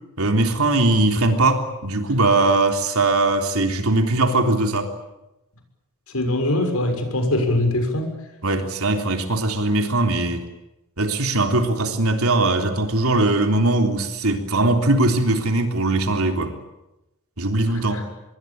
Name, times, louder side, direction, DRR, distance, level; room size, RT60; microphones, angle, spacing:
voice 1, 0.2-4.9 8.4-10.4 11.0-16.5 17.4-18.1, right 2 dB, 85° right, 5 dB, 3.5 m, -20 dB
voice 2, 6.1-8.1 17.7-18.0, left 1 dB, 90° left, 6 dB, 6.5 m, -22 dB
25.5 x 22.0 x 8.9 m, 0.94 s
head